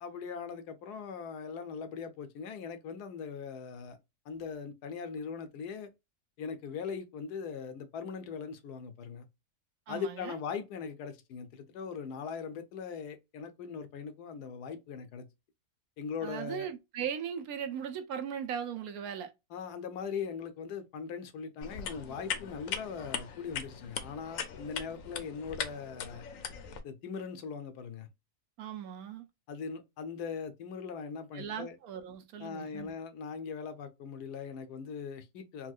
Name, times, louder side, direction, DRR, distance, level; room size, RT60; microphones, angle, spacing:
voice 1, 0.0-4.0 4.3-5.9 6.4-9.3 9.9-15.3 16.0-16.7 19.5-26.2 26.8-28.1 29.5-31.8 32.4-35.7, left 6 dB, 90° left, 1.3 m, -40 dB
voice 2, 9.9-10.4 16.2-19.3 28.6-29.3 31.3-32.9, right 8 dB, 75° right, 1.1 m, -38 dB
sound 1, 21.6-26.8, left 7 dB, 65° left, 1.0 m, -39 dB
4.5 x 2.2 x 2.3 m
omnidirectional pair, 1.6 m